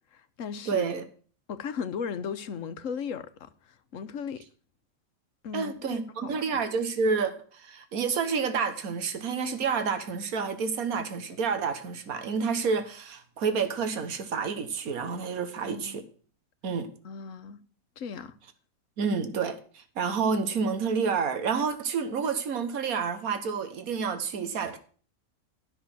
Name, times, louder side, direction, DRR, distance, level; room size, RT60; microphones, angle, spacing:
voice 1, 0.1-0.8 1.5-4.4 5.4-6.6 15.6-16.0 17.0-17.6 18.0-18.4, left 6 dB, 65° left, 1.2 m, -37 dB
voice 2, 0.7-1.0 5.5-16.0 16.6-16.9 19.0-24.8, right 5 dB, 80° right, 1.7 m, -29 dB
12.5 x 6.7 x 6.0 m
omnidirectional pair, 1.5 m